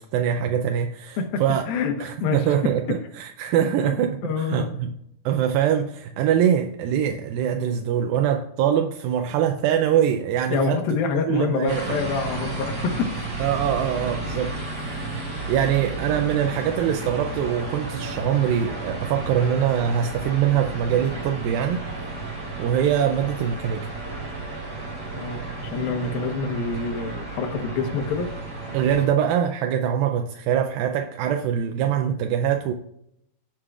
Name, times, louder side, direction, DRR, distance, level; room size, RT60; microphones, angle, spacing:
voice 1, 0.0-1.6 2.0-5.0 5.3-10.8 11.3-12.0 13.4-21.9 22.6-23.9 28.7-32.7, right 9 dB, 80° right, 2.2 m, -23 dB
voice 2, 1.7-2.4 3.8-4.7 10.5-13.3 25.1-28.3, left 4 dB, 75° left, 2.9 m, -27 dB
sound 1, 11.7-29.1, right 2 dB, 35° right, 4.4 m, -33 dB
16.5 x 7.5 x 2.4 m
omnidirectional pair, 4.5 m